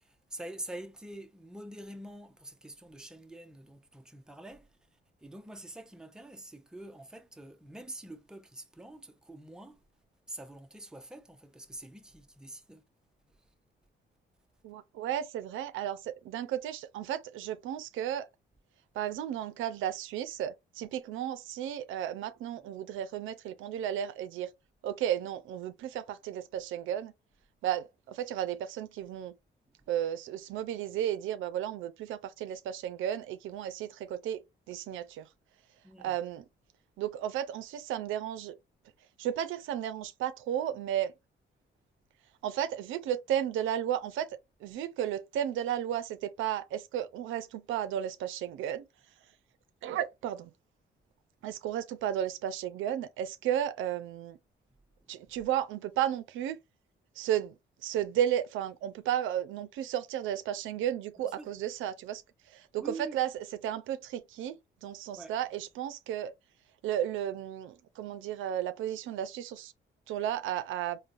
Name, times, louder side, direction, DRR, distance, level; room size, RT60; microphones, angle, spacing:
voice 1, 0.0-4.8 5.2-9.8 10.3-12.8 35.8-36.2 55.0-55.1 61.2-61.5 62.8-63.2 65.1-65.3, right 1 dB, 5° right, 0.5 m, -46 dB
voice 2, 14.6-18.3 18.9-24.5 24.8-27.1 27.6-29.3 29.9-34.4 34.7-35.3 36.0-36.4 37.0-38.6 39.2-41.1 42.4-44.3 44.6-48.9 49.8-50.5 51.4-54.4 55.1-56.6 57.2-57.5 57.8-62.2 62.5-63.3 63.6-66.3 66.8-69.7 70.1-71.0, right 10 dB, 85° right, 0.5 m, -33 dB
3.8 x 2.1 x 2.5 m
cardioid pair, 90°, 20 cm